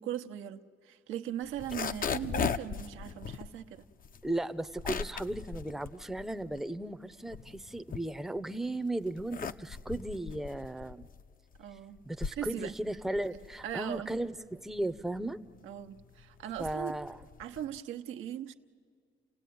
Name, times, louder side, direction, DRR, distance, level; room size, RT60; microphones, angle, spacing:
voice 1, 0.0-3.8 11.6-12.0 12.4-12.7 13.6-14.1 15.6-17.0 17.4-18.5, right 10 dB, 90° right, 6 dB, 1.0 m, -39 dB
sound 1, 1.4-6.8 7.1-8.6 9.0-17.8, left 7 dB, 45° left, 0.7 m, -39 dB
voice 2, 4.2-11.1 12.0-15.4 16.6-17.2, right 1 dB, ahead, 9 dB, 0.7 m, -36 dB
29.0 x 16.5 x 9.4 m, 2.1 s
cardioid pair, 90°, 20 cm